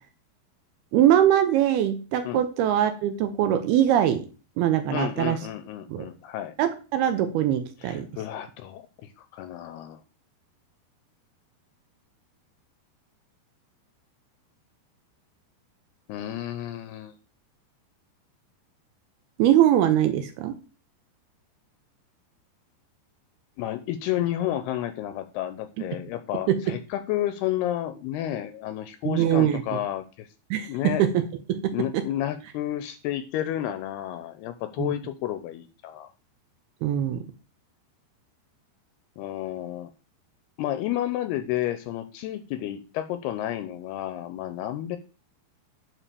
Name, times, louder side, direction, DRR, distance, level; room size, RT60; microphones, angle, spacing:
voice 1, 0.9-4.3 4.6-5.4 5.9-6.1 6.6-8.1 19.4-20.6 25.8-25.9 26.5-26.6 29.1-29.6 30.5-30.7 31.0-31.2 31.5-32.0 34.8-34.9 36.8-37.3, right 11 dB, 75° right, 8 dB, 2.5 m, -22 dB
voice 2, 4.9-6.5 7.8-10.0 16.1-17.1 23.6-30.3 30.7-31.0 31.7-36.1 39.2-39.9 40.6-45.0, left 12 dB, 80° left, 10 dB, 2.4 m, -31 dB
9.1 x 4.3 x 6.7 m, 0.34 s
omnidirectional pair, 5.1 m